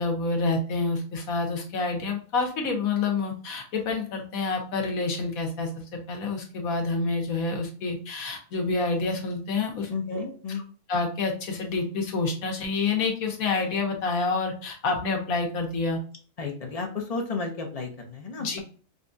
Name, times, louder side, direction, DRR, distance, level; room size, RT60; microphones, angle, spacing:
voice 1, 0.0-10.2 10.9-16.0 18.4-18.6, left 3 dB, 80° left, 2 dB, 1.3 m, -28 dB
voice 2, 9.9-10.6 16.4-18.6, left 4 dB, 40° left, 2 dB, 0.6 m, -32 dB
5.1 x 2.3 x 2.6 m, 0.41 s
omnidirectional pair, 1.5 m